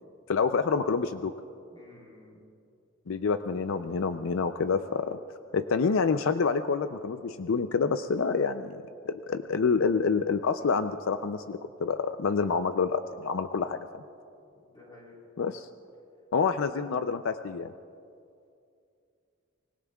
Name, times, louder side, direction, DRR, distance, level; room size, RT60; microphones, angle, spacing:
voice 1, 0.3-1.3 3.1-5.2 5.5-14.0 15.4-15.7 16.3-17.7, left 5 dB, 75° left, 10 dB, 0.5 m, -27 dB
voice 2, 1.7-2.4 14.6-15.1, left 2 dB, 20° left, -3 dB, 4.0 m, -53 dB
25.5 x 20.5 x 2.3 m, 2.4 s
head